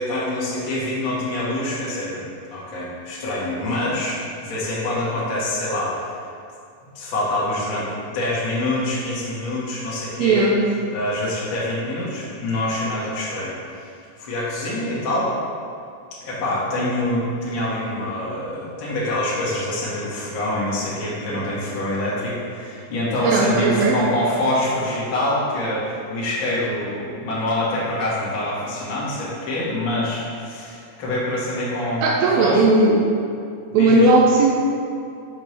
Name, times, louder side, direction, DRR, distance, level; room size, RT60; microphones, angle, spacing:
voice 1, 0.0-6.1 6.9-10.5 10.9-13.9 14.2-15.3 16.2-32.6 33.8-34.1, left 1 dB, 50° left, -8 dB, 1.5 m, -25 dB
voice 2, 10.2-10.6 23.2-24.0 32.0-33.1 33.7-34.5, right 2 dB, 85° right, -1 dB, 2.5 m, -16 dB
6.9 x 5.7 x 3.2 m, 2.4 s
omnidirectional pair, 4.3 m